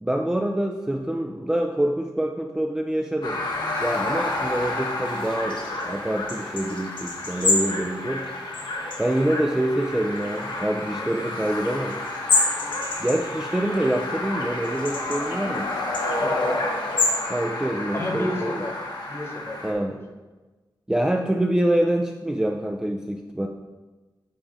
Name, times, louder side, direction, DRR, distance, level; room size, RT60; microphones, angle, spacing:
voice 1, 0.0-3.4 3.8-8.3 9.0-12.0 13.0-15.7 17.3-18.5 19.6-20.0 20.9-23.5, right 1 dB, 10° right, 2 dB, 0.4 m, -26 dB
sound 1, 3.2-19.7, left 2 dB, 65° left, 1.2 m, -31 dB
sound 2, 4.3-17.2, left 3 dB, 85° left, 1.3 m, -30 dB
voice 2, 16.2-16.6 17.9-18.7 19.1-20.0, left 1 dB, 30° left, 2 dB, 1.2 m, -30 dB
9.1 x 4.9 x 4.0 m, 1.2 s
wide cardioid pair, 140°, 8 cm